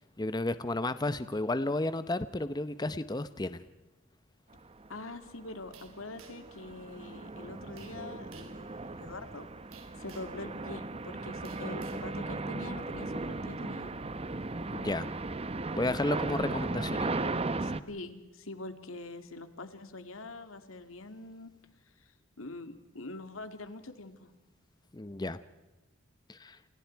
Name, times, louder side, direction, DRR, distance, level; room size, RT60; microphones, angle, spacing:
voice 1, 0.0-3.6 14.7-15.1 15.7-17.3 24.9-25.4 26.3-26.6, left 2 dB, 20° left, 13 dB, 0.7 m, -32 dB
Airplane Boeing Flyby Right to Left A, 4.8-5.0 5.5-17.8, right 3 dB, 30° right, 0.9 m, -37 dB
voice 2, 4.9-9.4 10.0-13.9 17.6-21.5 22.4-24.3, left 2 dB, 85° left, 8 dB, 2.5 m, -44 dB
sound 1, 5.7-6.6 7.8-8.0 8.3-8.6 9.7-10.4 11.4-12.1, right 6 dB, 90° right, 3.9 m, -54 dB
29.5 x 28.5 x 4.6 m, 1.1 s
head